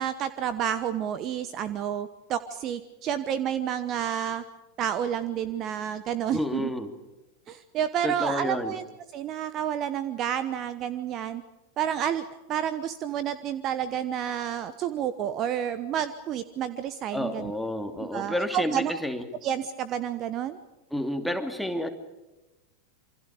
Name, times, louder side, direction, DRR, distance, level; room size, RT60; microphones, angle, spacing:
voice 1, 0.0-4.4 4.8-6.7 7.5-8.8 9.1-11.4 11.8-17.5 18.1-18.9 19.4-20.6, right 9 dB, 35° right, 14 dB, 1.1 m, -30 dB
voice 2, 6.3-6.9 8.0-8.8 17.1-19.2 20.9-21.9, left 1 dB, ahead, 5 dB, 2.7 m, -30 dB
28.0 x 25.0 x 5.0 m, 1.0 s
figure-of-eight pair, 90°, 0 cm